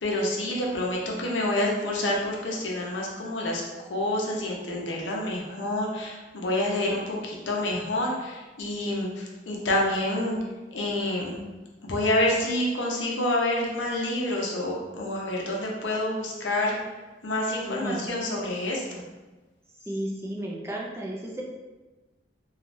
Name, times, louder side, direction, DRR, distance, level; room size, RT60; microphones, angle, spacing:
voice 1, 0.0-3.6 3.9-10.4 10.7-11.4 11.8-16.8 17.2-19.0, left 1 dB, 90° left, -2 dB, 0.6 m, -28 dB
voice 2, 17.6-18.0 19.9-21.4, right 1 dB, 15° right, -2 dB, 0.4 m, -33 dB
3.2 x 2.3 x 2.5 m, 1.2 s
head